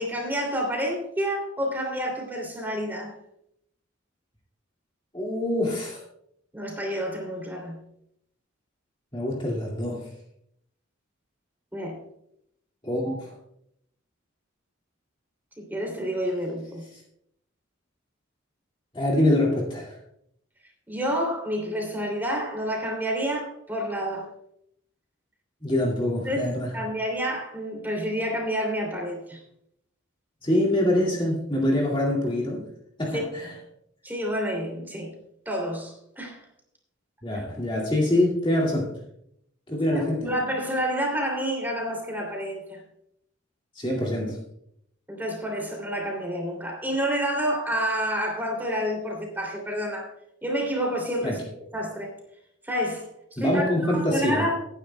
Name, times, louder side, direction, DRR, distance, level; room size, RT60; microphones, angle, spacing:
voice 1, 0.0-3.1 6.5-7.8 11.7-12.0 15.6-16.8 20.9-24.3 26.3-26.4 26.7-29.4 33.1-33.2 34.0-35.1 35.5-36.4 39.9-42.8 45.1-50.1 50.4-51.4 51.7-52.1 52.6-54.6, equal, 10° right, 1 dB, 2.8 m, -29 dB
voice 2, 5.1-6.0 9.1-10.1 12.8-13.4 16.9-17.0 18.9-20.0 25.6-26.7 30.4-32.7 33.0-33.6 37.2-38.9 39.7-40.3 43.7-44.4 51.2-51.4 53.4-54.5, left 1 dB, 25° left, -3 dB, 2.2 m, -25 dB
18.5 x 10.0 x 2.3 m, 0.74 s
head